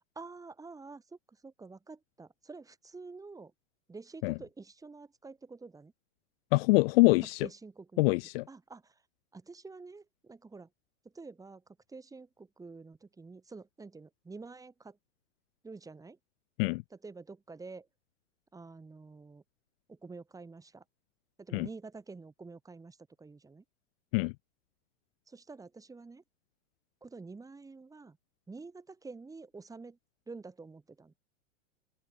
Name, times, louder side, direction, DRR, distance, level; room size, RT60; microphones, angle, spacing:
voice 1, 0.2-3.5 3.9-5.9 7.4-8.2 8.5-9.0 9.3-10.7 11.0-11.6 11.9-15.0 15.6-16.2 16.9-17.9 18.5-19.4 19.9-20.8 21.4-23.6 25.3-26.2 27.0-28.2 28.5-30.0 30.3-31.1, right 4 dB, 10° right, 3.9 m, -48 dB
voice 2, 6.5-7.5 8.0-8.4 16.6-16.8 21.5-21.7 24.1-24.3, left 24 dB, 50° left, 1.0 m, -25 dB
supercardioid pair, 145°, 39 cm